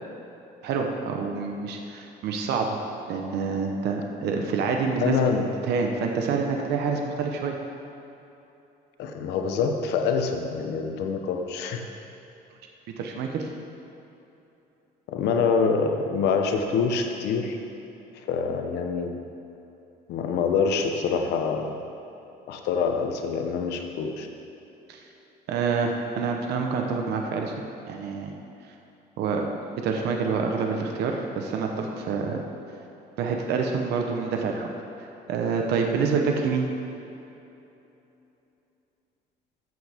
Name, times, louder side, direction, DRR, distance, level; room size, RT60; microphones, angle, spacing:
voice 1, 0.6-2.8 3.1-5.1 5.6-7.6 13.0-13.5 24.9-25.0 25.5-27.5 27.9-28.3 29.2-29.5 29.8-32.4 33.2-34.7 35.3-36.7, right 5 dB, 75° right, 2 dB, 1.0 m, -27 dB
voice 2, 5.0-5.4 9.0-11.9 15.1-17.6 18.3-19.2 20.1-21.7 22.5-24.3, left 5 dB, 80° left, 4 dB, 1.0 m, -25 dB
14.5 x 7.8 x 3.6 m, 2.9 s
cardioid pair, 110°, 17 cm